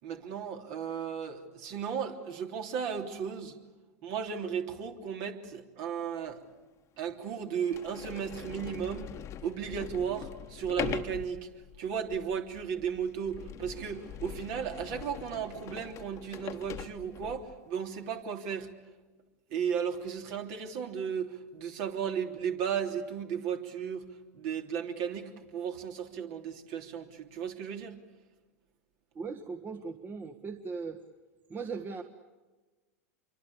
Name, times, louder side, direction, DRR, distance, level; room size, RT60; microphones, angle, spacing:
voice 1, 0.0-3.6 4.0-6.4 7.0-9.1 9.4-11.5 11.8-18.7 19.5-24.1 24.3-28.0, right 7 dB, 50° right, 4 dB, 3.3 m, -35 dB
Sliding door, 6.3-6.4 7.1-7.2 7.6-17.6, left 10 dB, 35° left, 1.3 m, -42 dB
voice 2, 29.1-31.0 31.5-32.0, right 4 dB, 25° right, 6 dB, 1.6 m, -38 dB
27.5 x 24.0 x 8.5 m, 1.2 s
hypercardioid pair, 95°, 8 cm